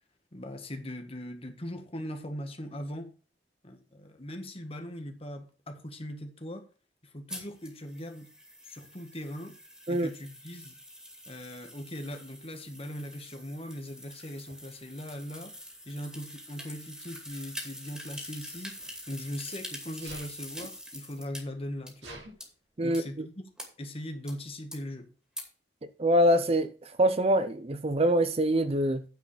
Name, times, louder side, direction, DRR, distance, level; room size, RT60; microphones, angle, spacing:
voice 1, 0.3-3.1 3.6-6.6 7.0-8.3 8.6-9.6 9.9-10.8 11.3-15.5 15.8-18.7 19.1-22.2 22.8-23.4 23.8-25.1, equal, 35° left, 1.6 m, -40 dB
sound 1, 7.3-21.4 21.9-22.0 22.4-22.5 22.9-23.0 23.6-23.7 24.3-24.4 24.7-24.8 25.4-25.5, equal, 5° right, 2.4 m, -45 dB
Sneeze, 14.5-14.6 15.7-16.1 18.1-19.6 20.0-20.3 21.1-21.2 21.4-22.3, right 2 dB, 75° right, 3.5 m, -49 dB
voice 2, 26.0-26.7 27.0-29.0, equal, 35° right, 0.6 m, -24 dB
9.4 x 4.9 x 7.3 m
head